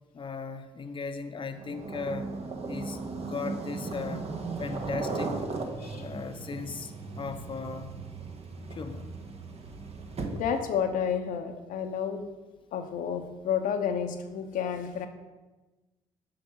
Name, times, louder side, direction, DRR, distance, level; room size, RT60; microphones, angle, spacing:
voice 1, 0.1-2.3 2.7-4.3 4.6-5.4 6.0-7.9 8.7-9.1, left 4 dB, 35° left, 7 dB, 0.8 m, -37 dB
sound 1, 1.5-10.7, right 3 dB, 45° right, 1.3 m, -37 dB
voice 2, 5.8-6.1 10.3-12.3 12.7-15.1, left 7 dB, 65° left, 5 dB, 0.8 m, -30 dB
6.8 x 5.3 x 6.5 m, 1.2 s
hypercardioid pair, 50°, 15 cm